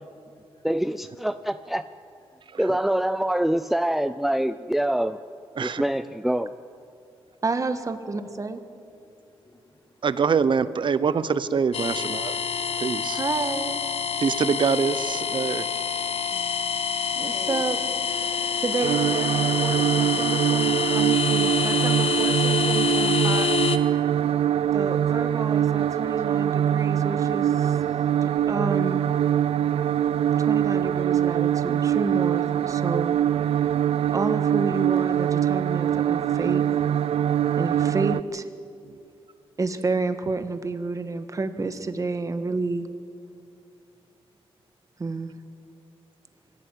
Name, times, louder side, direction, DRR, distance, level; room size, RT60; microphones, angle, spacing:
voice 1, 0.6-1.8 2.6-5.2 5.6-6.5, right 1 dB, ahead, 12 dB, 0.5 m, -25 dB
voice 2, 7.4-8.6 13.1-13.8 17.2-17.8 18.2-18.3 18.6-23.6 24.7-27.8 28.2-29.0 30.4-33.2 34.1-36.7 37.6-38.5 39.6-42.9 45.0-45.3, right 3 dB, 30° right, 8 dB, 1.6 m, -30 dB
voice 3, 10.0-12.4 12.8-13.2 14.2-15.6 38.9-39.0, right 6 dB, 50° right, 14 dB, 0.9 m, -25 dB
sound 1, 11.7-23.8, left 7 dB, 70° left, 1.3 m, -27 dB
voice 4, 17.3-17.6 18.4-18.5 23.9-24.8 25.5-27.0 27.4-28.4, left 2 dB, 35° left, 3 dB, 3.0 m, -48 dB
sound 2, 18.8-38.2, right 10 dB, 75° right, 0.4 m, -23 dB
23.0 x 15.5 x 9.3 m, 2.5 s
cardioid pair, 105°, 10 cm